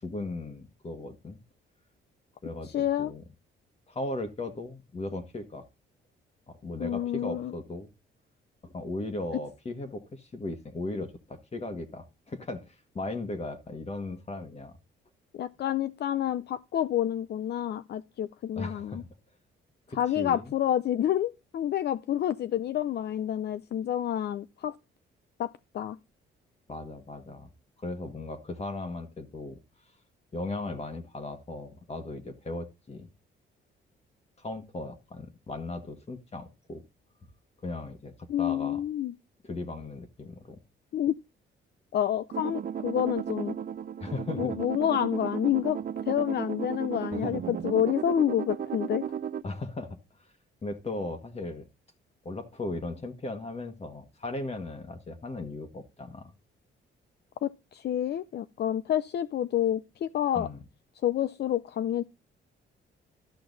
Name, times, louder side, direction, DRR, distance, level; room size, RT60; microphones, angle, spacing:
voice 1, 0.0-1.4 2.4-3.2 3.9-5.6 6.5-7.9 8.6-14.8 15.6-15.7 18.5-19.1 19.9-20.5 26.7-27.5 27.8-29.6 30.3-33.1 34.4-36.8 37.6-38.8 39.4-40.6 44.0-44.6 47.1-47.4 49.4-50.3 50.6-51.7 52.2-56.3 60.3-60.6, left 2 dB, 30° left, 1.6 m, -37 dB
voice 2, 2.7-3.1 6.8-7.5 15.3-19.0 19.9-24.7 25.4-26.0 38.3-39.1 40.9-41.2 41.9-43.5 44.4-45.8 46.1-49.0 57.4-60.5 61.0-62.0, left 11 dB, 55° left, 0.5 m, -28 dB
sound 1, 42.3-49.4, right 8 dB, 45° right, 0.6 m, -35 dB
13.0 x 5.7 x 4.0 m
cardioid pair, 90°, 20 cm